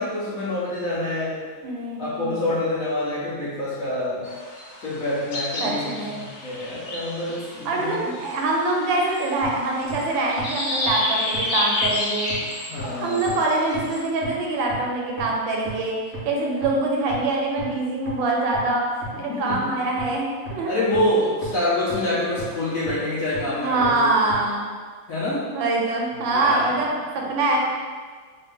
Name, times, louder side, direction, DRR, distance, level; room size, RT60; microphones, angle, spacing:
voice 1, 0.0-1.4 2.0-4.3 4.8-8.0 12.7-13.3 19.1-19.8 20.6-24.1 25.1-25.4 26.1-26.8 27.2-27.3, left 1 dB, 65° left, -7 dB, 0.9 m, -26 dB
voice 2, 1.6-2.4 5.6-6.2 7.6-12.3 13.0-15.9 16.2-18.8 19.2-20.7 23.6-24.7 25.5-27.6, right 2 dB, 85° right, -1 dB, 1.4 m, -24 dB
sound 1, 4.2-14.0, left 1 dB, 85° left, 0.6 m, -30 dB
sound 2, 9.4-9.5 9.9-10.0 10.4-10.5 10.9-11.0 11.3-11.4 11.8-11.9 12.3-12.4 12.8-12.9 13.3-13.4 13.7-13.8 14.2-14.3 14.7-14.8 15.2-15.3 15.7-15.8 16.1-16.2 16.6-16.7 17.1-17.2 17.6-17.7 18.1-18.2 18.5-18.6 19.0-19.1 19.5-19.6 20.0-20.1 20.5-20.6 20.9-21.0 21.4-21.5 21.9-22.0 22.4-22.5 22.9-23.0 23.3-23.4 23.8-23.9 24.3-24.4, left 2 dB, 30° left, 1.3 m, -34 dB
4.1 x 2.4 x 3.6 m, 1.6 s
omnidirectional pair, 2.0 m